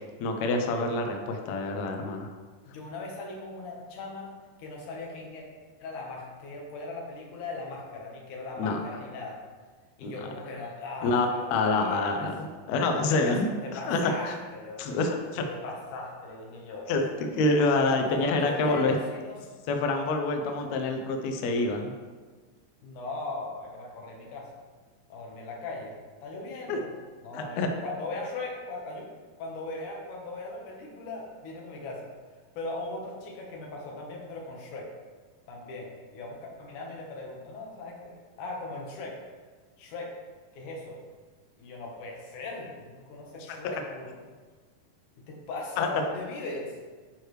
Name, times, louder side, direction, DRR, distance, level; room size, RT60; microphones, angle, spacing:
voice 1, 0.2-2.3 8.6-8.8 10.0-10.1 11.0-13.5 13.8-14.4 14.8-15.5 16.9-18.9 19.7-21.9 26.7-26.8 27.3-27.7 43.5-43.6 45.8-46.0, left 3 dB, 85° left, 3 dB, 1.5 m, -27 dB
voice 2, 2.7-4.3 4.6-5.5 5.8-9.4 10.0-12.3 13.0-13.4 13.6-14.8 15.5-17.0 17.8-19.4 22.8-24.5 25.1-26.9 27.2-29.1 29.4-32.1 32.6-34.9 35.5-38.1 38.4-39.2 39.8-40.1 40.5-41.0 41.6-44.1 45.3-46.8, left 2 dB, 65° left, -1 dB, 2.5 m, -39 dB
11.5 x 4.8 x 3.1 m, 1.4 s
omnidirectional pair, 4.1 m